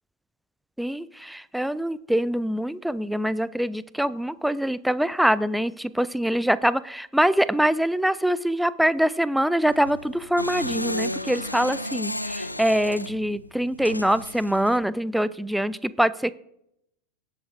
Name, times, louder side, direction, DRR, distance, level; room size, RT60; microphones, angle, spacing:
voice 1, 0.8-16.3, equal, ahead, 18 dB, 0.4 m, -24 dB
sound 1, 9.7-14.8, left 1 dB, 90° left, 0.5 m, -33 dB
18.0 x 7.8 x 2.6 m, 0.77 s
figure-of-eight pair, 90°, 0 cm